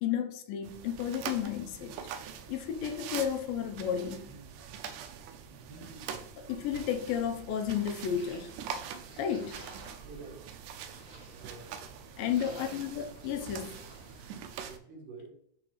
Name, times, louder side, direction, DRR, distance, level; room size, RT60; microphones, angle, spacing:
voice 1, 0.0-1.9 2.5-4.4 6.4-8.6 9.2-9.7 12.2-13.8, left 8 dB, 85° left, 7 dB, 2.4 m, -32 dB
sound 1, 0.6-14.8, right 7 dB, 80° right, 1.8 m, -44 dB
sound 2, 4.0-4.6 5.5-6.4 7.8-8.3 10.3-10.7, right 2 dB, 10° left, 1.4 m, -53 dB
sound 3, 6.9-14.3, right 2 dB, 35° right, 2.3 m, -53 dB
voice 2, 10.0-10.5 11.4-11.8 12.4-12.7 13.8-13.9 14.3-15.3, right 3 dB, 65° right, -2 dB, 3.1 m, -48 dB
9.9 x 3.9 x 3.1 m, 0.70 s
omnidirectional pair, 4.2 m